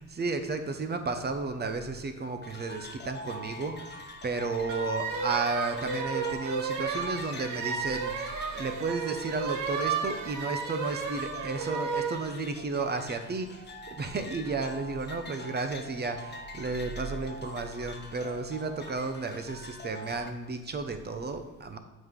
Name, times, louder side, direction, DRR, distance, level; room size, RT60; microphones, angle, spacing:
voice 1, 0.0-21.8, right 3 dB, 35° right, 7 dB, 0.9 m, -33 dB
sound 1, 2.4-20.3, left 1 dB, 35° left, 0.8 m, -44 dB
sound 2, 4.7-12.2, right 5 dB, 80° right, 1.0 m, -33 dB
7.8 x 5.1 x 3.7 m, 1.2 s
cardioid pair, 90°, 30 cm